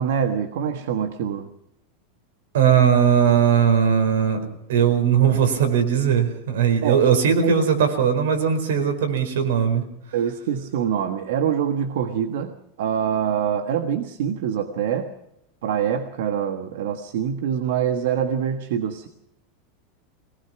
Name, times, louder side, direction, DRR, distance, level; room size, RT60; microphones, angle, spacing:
voice 1, 0.0-1.5 6.8-7.0 7.4-7.7 10.1-12.5 12.8-15.1 15.6-19.1, right 8 dB, 70° right, 7 dB, 1.5 m, -25 dB
voice 2, 2.5-4.4 4.7-9.8, right 7 dB, 90° right, 6 dB, 4.7 m, -19 dB
22.5 x 19.0 x 6.0 m, 0.80 s
supercardioid pair, 165°, 0 cm